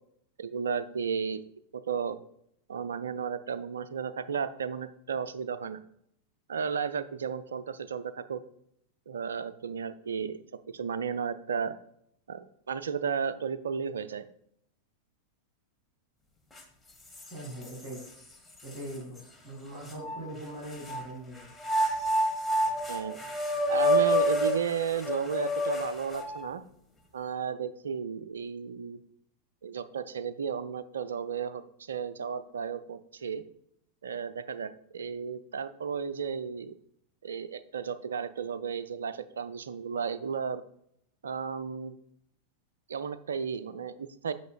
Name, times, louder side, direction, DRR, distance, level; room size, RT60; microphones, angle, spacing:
voice 1, 0.4-1.4 1.7-2.2 2.7-5.8 6.5-8.4 9.1-10.4 10.7-11.7 12.3-14.3 22.9-23.2 23.7-26.6 27.1-29.0 29.6-33.4 34.0-36.7 37.2-40.6 41.2-42.0 42.9-44.3, right 6 dB, 65° right, 14 dB, 0.4 m, -33 dB
sound 1, 16.6-16.7 17.1-18.1 18.7-18.8 19.9-21.0 21.6-26.5, equal, 5° left, 1.3 m, -28 dB
voice 2, 17.3-18.0 18.6-21.5, right 1 dB, 35° right, -5 dB, 2.2 m, -41 dB
9.2 x 5.8 x 2.3 m, 0.71 s
figure-of-eight pair, 90°, 0 cm